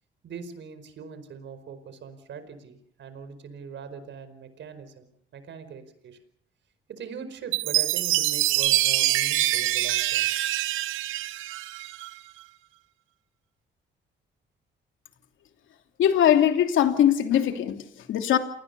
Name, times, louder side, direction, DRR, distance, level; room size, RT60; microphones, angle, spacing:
voice 1, 0.2-6.2 6.9-10.3, right 6 dB, 65° right, 11 dB, 4.7 m, -41 dB
Chime, 7.5-12.1, right 15 dB, 90° right, 1.1 m, -25 dB
voice 2, 16.0-18.4, left 10 dB, 80° left, 6 dB, 2.9 m, -21 dB
29.0 x 19.5 x 6.8 m, 0.70 s
cardioid pair, 90°, 20 cm